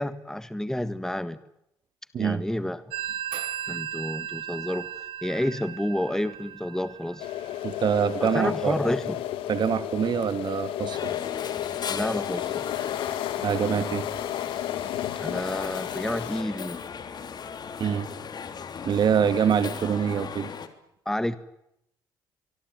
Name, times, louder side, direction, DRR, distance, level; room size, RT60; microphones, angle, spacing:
voice 1, 0.0-1.4 2.2-2.9 3.7-4.9 5.2-7.3 8.2-9.2 11.9-12.6 15.1-16.8 21.0-21.4, left 1 dB, 5° left, 13 dB, 1.7 m, -29 dB
Telephone, 2.9-8.2, right 10 dB, 80° right, 1.8 m, -36 dB
sound 1, 7.2-16.4, left 13 dB, 80° left, 2.1 m, -32 dB
voice 2, 7.6-8.8 9.5-11.1 13.4-14.1 17.8-18.1 18.8-20.5, right 8 dB, 55° right, 12 dB, 2.4 m, -25 dB
sound 2, 10.9-20.7, left 6 dB, 50° left, 3.2 m, -37 dB
24.5 x 23.0 x 9.5 m, 0.80 s
supercardioid pair, 65°, 9 cm